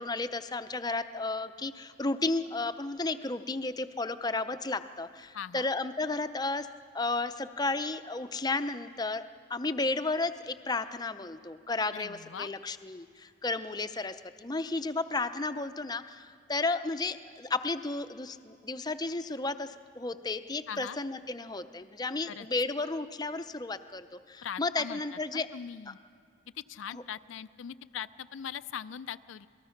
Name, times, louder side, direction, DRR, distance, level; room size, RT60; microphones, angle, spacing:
voice 1, 0.0-6.7 6.9-25.5 25.9-26.0 26.9-27.0, left 3 dB, 20° left, 10 dB, 0.6 m, -33 dB
voice 2, 5.3-5.7 11.9-12.5 20.7-21.0 22.3-22.5 24.4-26.0 26.5-29.5, left 8 dB, 80° left, 13 dB, 0.4 m, -41 dB
27.5 x 19.5 x 5.8 m, 2.3 s
head